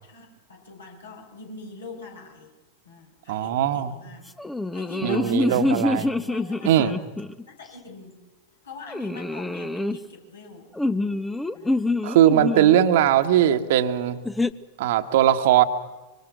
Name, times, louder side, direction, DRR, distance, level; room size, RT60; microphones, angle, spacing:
voice 1, 0.0-2.5 2.8-4.2 4.7-7.0 7.5-8.2 8.6-10.7 11.5-11.9, left 3 dB, 70° left, 1 dB, 6.8 m, -43 dB
voice 2, 3.3-3.9 5.0-6.1 6.6-6.9 12.0-14.2 14.8-15.6, right 11 dB, 55° right, 9 dB, 1.6 m, -19 dB
sound 1, 4.4-7.4 8.9-10.0 10.8-12.9 14.2-14.5, left 2 dB, 5° left, 1.0 m, -26 dB
26.0 x 25.0 x 6.3 m, 1.1 s
figure-of-eight pair, 90°, 0 cm